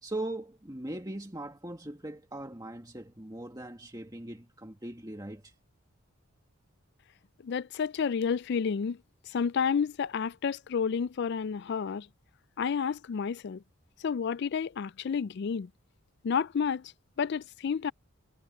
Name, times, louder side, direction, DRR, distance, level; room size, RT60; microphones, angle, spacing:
voice 1, 0.0-5.5, right 1 dB, 15° right, 1.8 m, -40 dB
voice 2, 7.4-9.0 9.3-12.1 12.6-13.6 14.0-15.7 16.2-16.9 17.2-17.9, left 6 dB, 50° left, 0.3 m, -30 dB
head